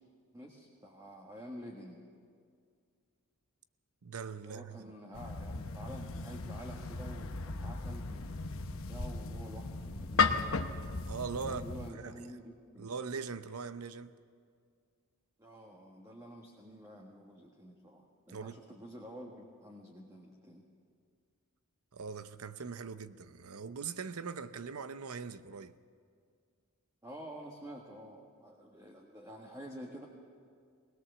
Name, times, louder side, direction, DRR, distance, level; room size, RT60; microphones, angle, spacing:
voice 1, 0.3-2.1 4.4-10.6 11.4-12.9 15.4-20.6 27.0-30.1, equal, 15° right, 1.6 m, -49 dB
voice 2, 4.0-4.9 11.1-12.3 12.8-14.1 18.3-18.6 21.9-25.7, right 5 dB, 90° right, 0.7 m, -41 dB
sound 1, 5.1-11.9, left 4 dB, 65° left, 1.0 m, -35 dB
20.5 x 20.0 x 6.9 m
head